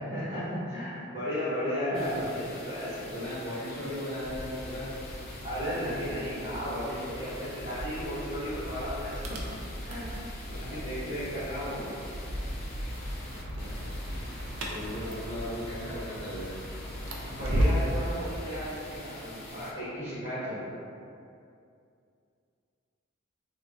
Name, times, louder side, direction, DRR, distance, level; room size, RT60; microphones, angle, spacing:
voice 1, 0.0-3.0 5.4-9.4 9.8-11.9 17.2-20.7, equal, 35° right, -17 dB, 1.3 m, -34 dB
sound 1, 1.9-19.7, left 1 dB, 50° left, 0.5 m, -45 dB
voice 2, 3.1-4.9 10.5-11.2 13.3-16.5, left 1 dB, 25° left, -15 dB, 1.0 m, -38 dB
sound 2, 4.2-18.0, equal, 65° right, 0.4 m, -36 dB
3.6 x 2.3 x 2.5 m, 2.5 s
head